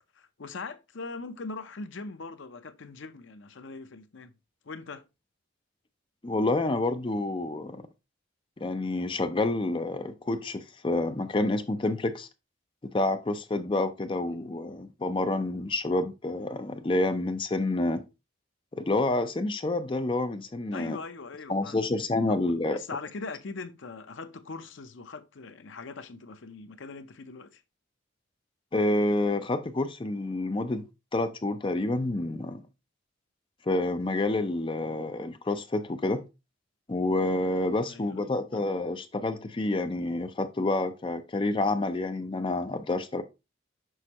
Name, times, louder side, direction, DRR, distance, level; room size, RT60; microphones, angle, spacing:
voice 1, 0.1-4.3 4.6-5.0 14.3-14.5 20.7-21.9 22.3-27.6 37.9-38.1, left 3 dB, 65° left, 0.6 m, -41 dB
voice 2, 6.2-7.9 8.6-12.3 12.9-18.0 18.7-21.0 21.5-22.8 28.7-30.8 31.1-32.6 33.7-36.2 36.9-43.2, left 2 dB, 25° left, 0.5 m, -28 dB
6.3 x 5.3 x 2.9 m
head